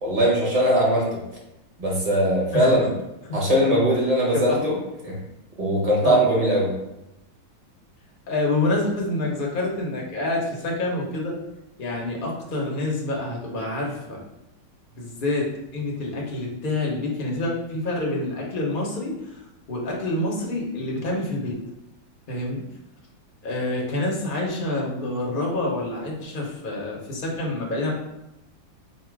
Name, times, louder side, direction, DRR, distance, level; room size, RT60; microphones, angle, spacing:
voice 1, 0.0-1.2 1.8-2.9 3.3-4.8 5.0-5.2 5.6-6.7, equal, 30° right, -4 dB, 0.8 m, -20 dB
voice 2, 4.3-4.7 6.0-6.2 8.3-11.4 11.8-14.2 14.9-15.5 15.7-19.4 19.7-21.6 22.3-22.6 23.4-27.9, left 2 dB, 50° left, -2 dB, 0.6 m, -27 dB
4.2 x 2.2 x 4.6 m, 0.88 s
omnidirectional pair, 2.1 m